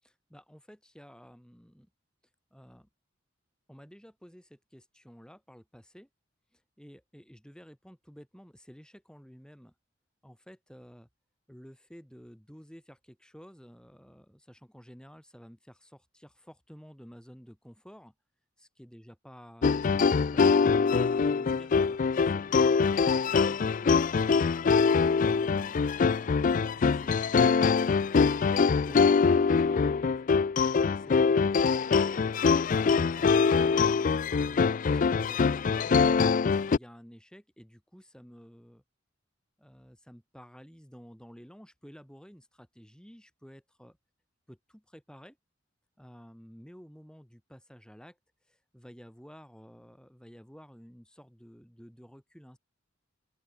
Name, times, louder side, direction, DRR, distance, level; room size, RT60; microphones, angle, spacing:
voice 1, 0.0-1.9 2.5-2.9 3.7-6.1 6.5-9.7 10.2-11.1 11.5-18.1 18.6-24.5 26.7-28.1 28.8-29.9 30.2-30.3 30.6-32.2 32.5-33.9 34.4-38.8 39.6-44.0 44.5-44.6 44.9-45.4 46.0-48.2 48.5-52.6, equal, 5° left, 6.6 m, -52 dB
sound 1, 19.6-36.8, left 5 dB, 45° left, 0.4 m, -24 dB
open air
head